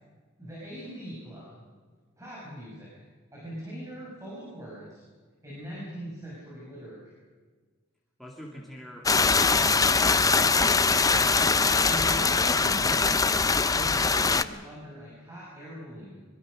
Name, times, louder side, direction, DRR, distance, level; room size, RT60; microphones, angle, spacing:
voice 1, 0.4-1.6 2.2-2.9 3.3-5.0 5.4-7.1 11.8-13.3 13.7-16.3, equal, 15° right, -6 dB, 6.4 m, -41 dB
voice 2, 8.2-10.4, equal, ahead, -3 dB, 2.5 m, -46 dB
sound 1, 9.1-14.4, left 4 dB, 20° left, 0.6 m, -22 dB
23.0 x 23.0 x 6.5 m, 1.4 s
head